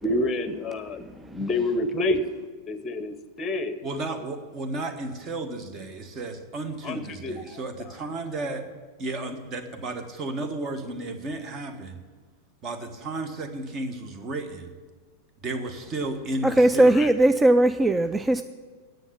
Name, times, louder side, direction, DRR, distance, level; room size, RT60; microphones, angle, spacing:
voice 1, 0.0-2.2 2.7-3.8 6.8-7.6 17.0-17.1, left 2 dB, 20° left, 11 dB, 0.8 m, -28 dB
voice 2, 3.8-8.6 9.0-12.0 12.6-14.7 15.4-16.9, right 2 dB, 30° right, 8 dB, 1.3 m, -33 dB
voice 3, 16.4-18.4, right 1 dB, 10° right, 10 dB, 0.3 m, -19 dB
9.8 x 7.8 x 9.6 m, 1.4 s
figure-of-eight pair, 90°, 0 cm